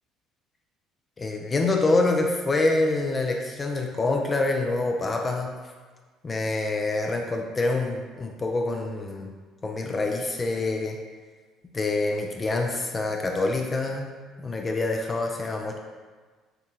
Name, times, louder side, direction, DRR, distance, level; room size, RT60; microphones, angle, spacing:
voice 1, 1.2-5.5 6.2-9.3 9.6-11.0 11.7-14.1 14.4-15.8, left 2 dB, 30° left, 2 dB, 0.4 m, -26 dB
3.4 x 2.6 x 2.9 m, 1.4 s
supercardioid pair, 75°, 0 cm